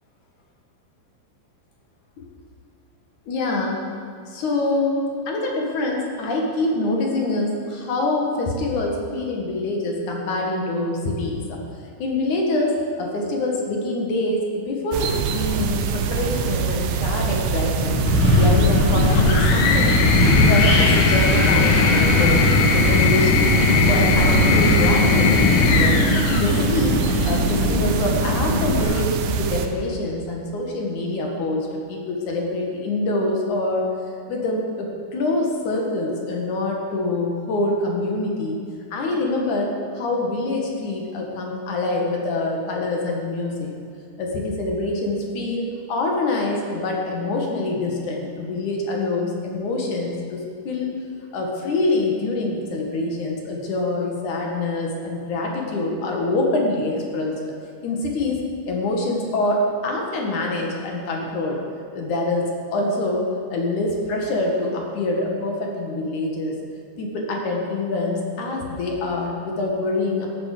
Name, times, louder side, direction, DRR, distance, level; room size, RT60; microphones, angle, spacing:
voice 1, 3.3-3.8 4.3-5.0 5.3-11.6 12.0-18.0 18.3-20.0 20.3-22.4 22.7-26.0 26.3-27.0 27.2-33.9 34.3-38.6 38.9-43.7 44.2-50.9 51.3-57.5 57.8-58.4 58.6-61.6 61.9-66.6 67.0-70.3, left 2 dB, 55° left, 0 dB, 2.3 m, -25 dB
sound 1, 14.9-29.7, right 6 dB, 75° right, 3.0 m, -24 dB
Wind, 17.8-28.8, left 1 dB, 30° left, 3.0 m, -21 dB
sound 2, 19.0-27.4 28.6-29.3, left 6 dB, 70° left, 3.1 m, -20 dB
14.5 x 11.5 x 6.8 m, 2.3 s
omnidirectional pair, 5.8 m